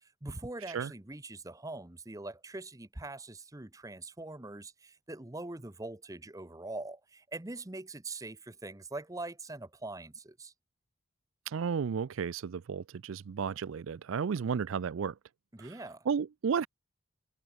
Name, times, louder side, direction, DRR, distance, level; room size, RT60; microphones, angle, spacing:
voice 1, 0.0-10.5 15.5-16.1, right 2 dB, 15° right, 0.9 m, -43 dB
voice 2, 11.5-15.1 15.6-15.7 16.1-16.7, right 6 dB, 80° right, 0.4 m, -33 dB
head